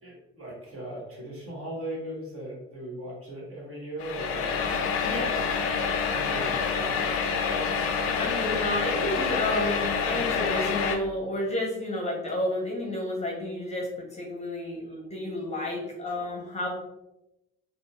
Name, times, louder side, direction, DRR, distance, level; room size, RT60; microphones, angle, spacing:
voice 1, 0.0-7.5 14.6-14.7, right 1 dB, 40° right, -4 dB, 1.3 m, -39 dB
sound 1, 4.0-11.0, left 5 dB, 45° left, 0.5 m, -27 dB
voice 2, 5.0-5.4 6.1-6.2 8.2-16.7, left 1 dB, 20° left, -2 dB, 0.8 m, -31 dB
3.9 x 2.0 x 2.3 m, 0.90 s
figure-of-eight pair, 45°, 34 cm